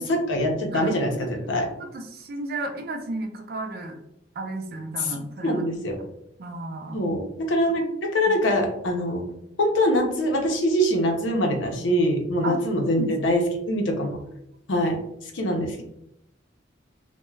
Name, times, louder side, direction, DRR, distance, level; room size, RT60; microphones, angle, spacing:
voice 1, 0.0-1.7 5.0-5.1 5.4-6.0 6.9-9.2 9.6-14.2 14.7-15.0 15.3-15.8, equal, 75° left, 2 dB, 0.6 m, -24 dB
voice 2, 1.8-4.0 4.4-5.6 6.4-7.0 11.9-12.0 12.4-12.6 13.0-13.1, right 2 dB, 50° right, 4 dB, 0.4 m, -33 dB
2.3 x 2.1 x 3.1 m, 0.77 s
head